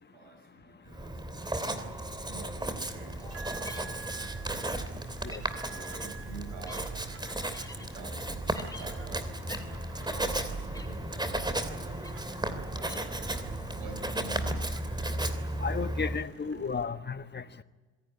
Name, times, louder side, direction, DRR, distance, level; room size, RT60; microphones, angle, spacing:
voice 1, 0.0-1.7 2.2-4.2 5.5-7.0 7.7-12.0 12.6-13.1 13.7-14.6, right 3 dB, 75° right, 5 dB, 6.1 m, -49 dB
Writing, 0.9-16.3, right 1 dB, 10° right, 3.1 m, -35 dB
sound 1, 3.0-13.9, left 2 dB, 10° left, 4.1 m, -51 dB
sound 2, 3.3-16.8, right 6 dB, 40° right, 3.7 m, -46 dB
voice 2, 15.6-17.4, left 5 dB, 30° left, 11 dB, 1.3 m, -33 dB
26.0 x 17.0 x 9.7 m, 1.3 s
hypercardioid pair, 55°, 34 cm